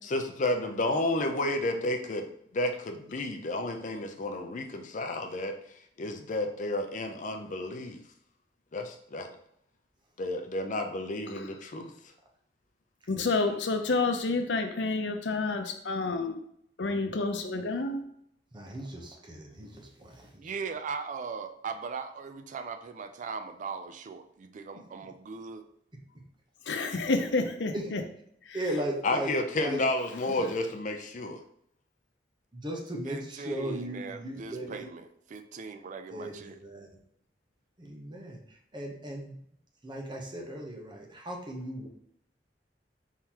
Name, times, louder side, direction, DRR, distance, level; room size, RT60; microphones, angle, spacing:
voice 1, 0.0-2.3 2.5-5.5 6.0-8.0 8.7-9.3 10.2-11.9 29.0-31.4, left 2 dB, 45° left, 6 dB, 0.5 m, -31 dB
voice 2, 13.1-16.4 16.8-18.0 26.7-28.0 28.5-28.6, left 3 dB, 90° left, 5 dB, 0.6 m, -29 dB
voice 3, 18.5-20.5 25.0-25.1 27.7-27.9 28.5-29.3 29.6-29.9 30.3-30.5 32.5-34.9 36.1-36.9 37.8-39.4 39.8-41.9, right 1 dB, 25° right, 0 dB, 0.8 m, -37 dB
voice 4, 20.3-25.6 33.0-36.6, right 5 dB, 45° right, 8 dB, 0.3 m, -39 dB
4.4 x 3.7 x 2.9 m, 0.71 s
head